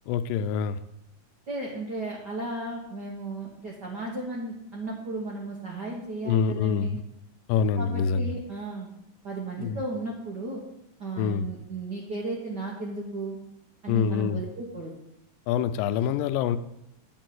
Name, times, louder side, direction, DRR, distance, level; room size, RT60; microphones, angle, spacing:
voice 1, 0.1-0.8 6.2-7.0 7.5-8.3 9.6-9.8 11.2-11.5 13.9-14.4 15.5-16.6, left 7 dB, 90° left, 11 dB, 2.3 m, -25 dB
voice 2, 1.5-7.0 7.8-8.9 9.2-10.6 11.0-13.4 13.8-14.9, right 2 dB, 70° right, -2 dB, 1.0 m, -35 dB
9.6 x 4.5 x 7.8 m, 0.82 s
omnidirectional pair, 3.8 m